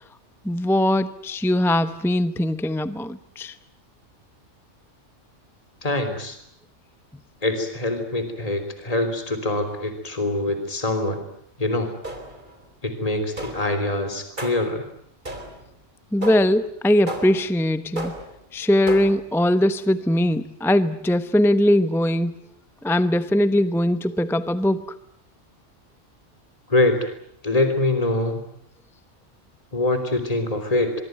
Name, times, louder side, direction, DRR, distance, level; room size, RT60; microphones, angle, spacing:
voice 1, 0.4-3.5 16.1-18.1 18.5-22.4 22.8-24.8, left 1 dB, ahead, 0.8 m, -21 dB
voice 2, 5.8-6.4 7.4-11.2 11.6-11.9 12.8-14.8 26.7-27.1 27.4-28.4 29.7-30.9, left 2 dB, 30° left, 3.4 m, -24 dB
sound 1, 12.0-12.5 13.4-13.8 14.4-14.8 15.2-15.7 16.2-16.6 17.1-17.5 18.0-18.4 18.9-19.3, right 1 dB, 40° right, 4.1 m, -33 dB
24.5 x 23.5 x 9.2 m
omnidirectional pair, 1.3 m